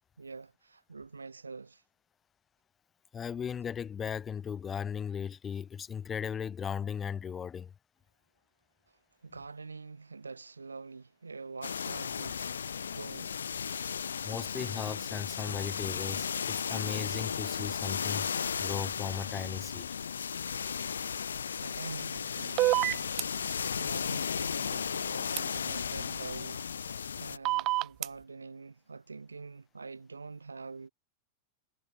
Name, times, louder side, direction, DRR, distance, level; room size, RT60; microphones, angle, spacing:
voice 1, 0.2-1.8 9.2-12.5 12.9-13.4 21.6-23.3 23.7-30.9, right 4 dB, 75° right, 4.0 m, -45 dB
voice 2, 3.1-7.7 14.2-18.3 18.6-19.9, left 7 dB, 20° left, 0.8 m, -37 dB
sound 1, 11.6-27.4, left 7 dB, 70° left, 0.5 m, -35 dB
sound 2, 22.6-23.2 25.4-25.5 27.5-28.1, right 20 dB, 40° right, 0.3 m, -26 dB
figure-of-eight pair, 90°, 0 cm